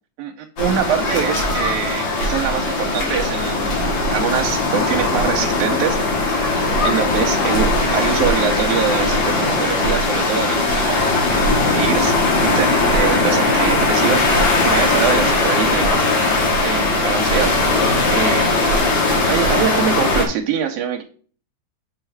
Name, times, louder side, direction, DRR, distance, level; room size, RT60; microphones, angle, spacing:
voice 1, 0.2-6.5 6.8-11.4 11.7-12.1 12.4-14.3 14.6-16.0 16.6-17.6 18.1-18.9 19.3-21.0, right 8 dB, 85° right, 3 dB, 2.1 m, -24 dB
sound 1, 0.6-20.3, left 2 dB, 65° left, 3.1 m, -19 dB
6.6 x 4.0 x 4.5 m, 0.42 s
omnidirectional pair, 3.5 m